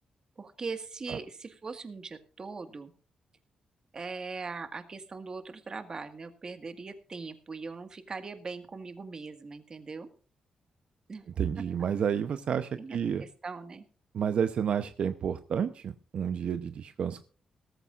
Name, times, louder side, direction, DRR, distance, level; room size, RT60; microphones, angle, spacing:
voice 1, 0.4-2.9 3.9-10.1 11.1-11.3 12.8-13.9, right 4 dB, 35° right, 9 dB, 1.8 m, -40 dB
voice 2, 11.4-13.2 14.1-17.2, right 7 dB, 65° right, 10 dB, 0.8 m, -30 dB
18.0 x 14.5 x 2.5 m, 0.39 s
wide cardioid pair, 125°, 2 cm